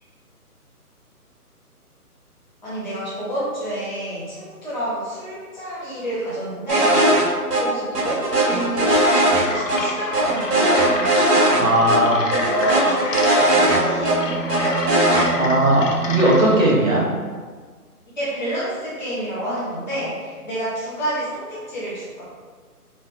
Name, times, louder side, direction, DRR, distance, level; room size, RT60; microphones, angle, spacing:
voice 1, 2.6-11.7 12.3-15.3 18.2-22.2, right 1 dB, 30° left, -10 dB, 0.9 m, -28 dB
sound 1, 6.7-7.2 7.5-7.6 7.9-9.8 10.1-11.6 11.9-12.0 12.3-14.2 14.5-15.2, right 1 dB, 85° right, 1.0 m, -18 dB
sound 2, 8.8-16.7, left 3 dB, 60° left, 0.5 m, -30 dB
voice 2, 11.5-12.2 15.4-17.0, right 1 dB, 55° right, -5 dB, 1.0 m, -17 dB
sound 3, 13.4-17.7, right 9 dB, 15° right, 0.8 m, -32 dB
3.1 x 2.1 x 3.5 m, 1.5 s
hypercardioid pair, 155°, 46 cm